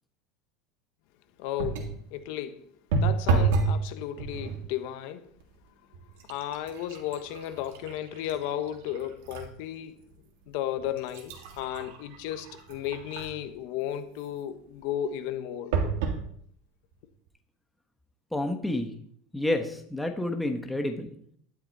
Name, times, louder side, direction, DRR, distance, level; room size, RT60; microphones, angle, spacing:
voice 1, 1.4-2.6 3.0-5.3 6.3-9.9 10.5-15.7, left 11 dB, 60° left, 1.2 m, -34 dB
sound 1, 1.6-2.0 2.9-3.8 4.2-4.7 5.4-5.6 5.9-9.5 10.0-10.1 10.8-13.5 15.7-16.2 16.9-17.0 17.3-17.4, right 4 dB, 85° right, 2.9 m, -30 dB
voice 2, 18.3-18.9 19.3-21.1, left 1 dB, 5° left, 1.2 m, -29 dB
12.5 x 11.0 x 4.2 m
supercardioid pair, 160°, 0 cm